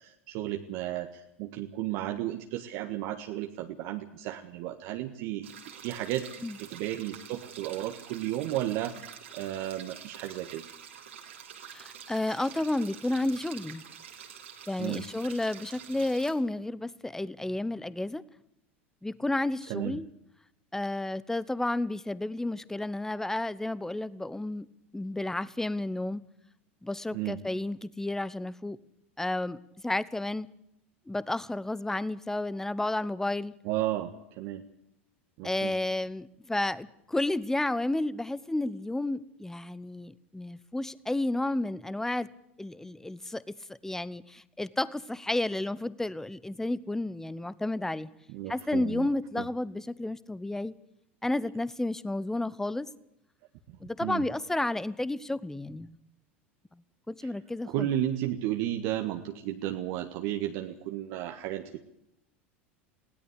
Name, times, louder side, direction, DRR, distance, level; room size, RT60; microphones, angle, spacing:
voice 1, 0.0-5.5 5.8-6.3 6.6-9.0 9.3-10.6 14.8-15.0 19.7-20.0 27.1-27.4 33.6-34.6 35.4-35.7 48.3-49.1 49.3-49.5 53.7-54.3 57.7-61.8, right 13 dB, 60° right, 4 dB, 1.7 m, -33 dB
sound 1, 5.4-16.3, right 8 dB, 80° right, 3.6 m, -47 dB
voice 2, 11.7-13.8 14.7-18.2 19.0-20.1 20.7-24.7 24.9-26.2 26.8-28.8 29.2-29.6 29.8-30.5 31.1-33.5 35.4-42.3 42.6-43.4 43.7-48.1 48.5-50.7 51.2-52.9 53.8-56.0 57.1-57.9, left 2 dB, 5° left, 18 dB, 1.0 m, -31 dB
20.5 x 17.0 x 8.4 m, 0.80 s
hypercardioid pair, 85°, 7 cm